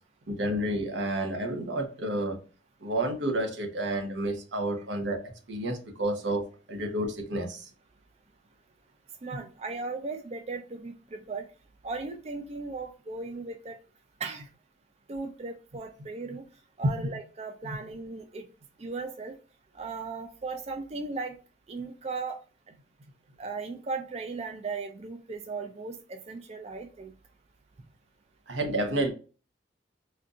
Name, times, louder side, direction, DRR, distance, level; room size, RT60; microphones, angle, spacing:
voice 1, 0.3-2.4 2.8-7.7 17.6-17.8 28.5-29.1, right 1 dB, 90° right, 1.0 m, -30 dB
voice 2, 9.2-11.5 11.8-13.8 14.2-14.5 15.1-16.4 16.8-18.4 18.8-19.3 19.8-21.4 21.7-22.4 23.4-27.1, right 4 dB, 35° right, 0.4 m, -37 dB
4.4 x 2.5 x 2.4 m
head